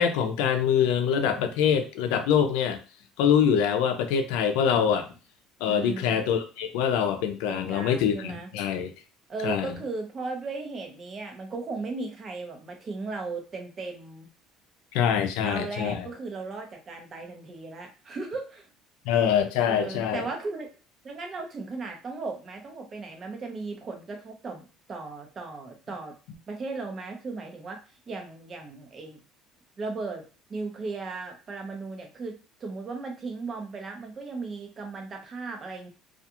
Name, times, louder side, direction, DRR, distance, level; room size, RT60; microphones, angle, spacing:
voice 1, 0.0-2.8 3.2-5.1 5.6-8.9 9.4-9.7 14.9-16.0 19.1-20.2, left 8 dB, 85° left, 7 dB, 0.5 m, -24 dB
voice 2, 5.7-6.2 7.5-8.5 9.3-14.3 15.4-18.7 19.7-20.7 21.0-26.1 26.5-27.8 28.1-29.2 29.8-30.2 30.5-35.9, right 3 dB, 35° right, 2 dB, 0.8 m, -36 dB
2.4 x 2.3 x 2.9 m, 0.34 s
cardioid pair, 120°, 0 cm